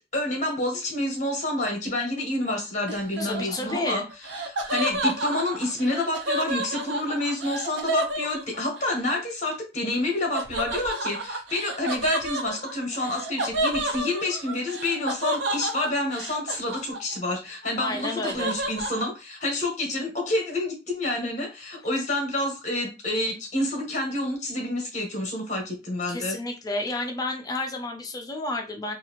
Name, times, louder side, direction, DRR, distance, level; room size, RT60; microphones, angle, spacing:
voice 1, 0.1-4.0 4.5-26.4, left 1 dB, 35° left, 2 dB, 1.0 m, -28 dB
Laughter, 2.9-8.9 10.3-17.3 17.6-19.1, right 1 dB, 60° right, 0.5 m, -30 dB
voice 2, 3.2-4.1 17.8-18.5 26.1-29.0, left 2 dB, 20° left, 3 dB, 0.4 m, -31 dB
2.7 x 2.4 x 2.9 m, 0.29 s
head